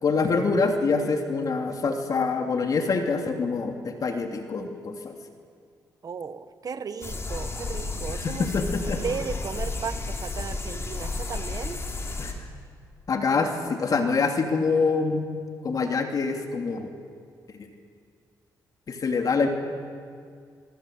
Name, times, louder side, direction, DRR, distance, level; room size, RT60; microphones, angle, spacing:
voice 1, 0.0-5.1 8.1-9.0 12.2-12.3 13.1-15.2 15.6-16.9 18.9-19.5, left 4 dB, 50° left, 4 dB, 2.8 m, -25 dB
voice 2, 6.0-8.5 8.9-11.8, right 6 dB, 50° right, 11 dB, 1.5 m, -35 dB
sound 1, 7.0-12.3, left 3 dB, 35° left, 3.6 m, -32 dB
25.0 x 24.0 x 7.9 m, 2.2 s
cardioid pair, 85°, 8 cm